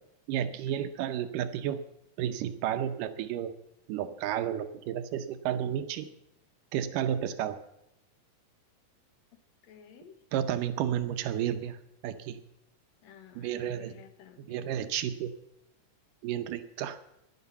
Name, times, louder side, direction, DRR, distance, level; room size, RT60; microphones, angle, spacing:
voice 1, 0.3-1.8 2.2-3.5 3.9-6.1 6.7-7.6 10.3-11.8 12.0-12.4 13.4-13.9 14.5-15.3 16.2-17.0, right 10 dB, 80° right, 10 dB, 2.4 m, -32 dB
voice 2, 9.6-10.2 13.0-14.7, left 8 dB, 65° left, 8 dB, 2.2 m, -53 dB
11.0 x 11.0 x 7.0 m, 0.83 s
omnidirectional pair, 3.7 m